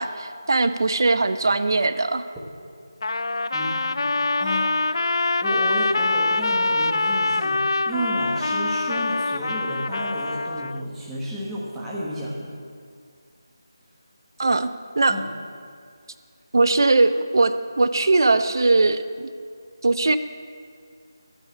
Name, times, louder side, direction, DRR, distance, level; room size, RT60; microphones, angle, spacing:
voice 1, 0.0-2.3 14.4-14.7 15.0-15.1 16.5-19.3 19.8-20.2, right 3 dB, 60° right, 11 dB, 0.6 m, -20 dB
Trumpet, 3.0-10.8, left 2 dB, 75° left, 0.3 m, -24 dB
voice 2, 3.5-4.9 5.4-12.5 15.1-15.3, equal, 5° right, -8 dB, 1.3 m, -32 dB
12.5 x 5.6 x 8.6 m, 2.2 s
figure-of-eight pair, 170°, 2 cm